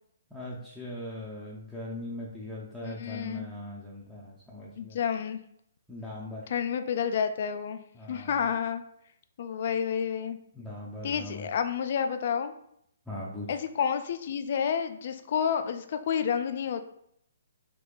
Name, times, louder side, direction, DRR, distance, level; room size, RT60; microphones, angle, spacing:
voice 1, 0.3-5.0 5.9-6.5 7.9-8.4 10.5-11.5 13.1-13.6, left 1 dB, ahead, -9 dB, 0.5 m, -40 dB
voice 2, 2.8-3.5 4.8-5.4 6.5-7.8 8.1-8.8 9.4-10.4 11.0-12.5 13.5-16.8, left 7 dB, 50° left, 9 dB, 0.3 m, -30 dB
3.5 x 2.9 x 2.4 m, 0.72 s
hypercardioid pair, 140°, 0 cm